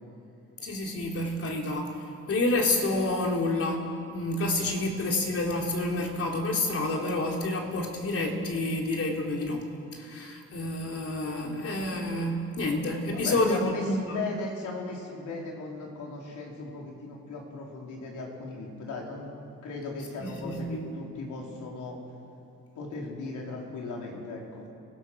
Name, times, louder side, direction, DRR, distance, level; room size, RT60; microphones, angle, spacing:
voice 1, 0.6-2.0 2.3-9.7 9.9-14.2 20.2-20.9, left 2 dB, 50° left, 0 dB, 3.9 m, -29 dB
voice 2, 13.2-19.3 19.6-22.0 22.7-24.6, left 3 dB, 75° left, -1 dB, 4.7 m, -37 dB
27.0 x 17.0 x 6.5 m, 2.6 s
cardioid pair, 90°, 30 cm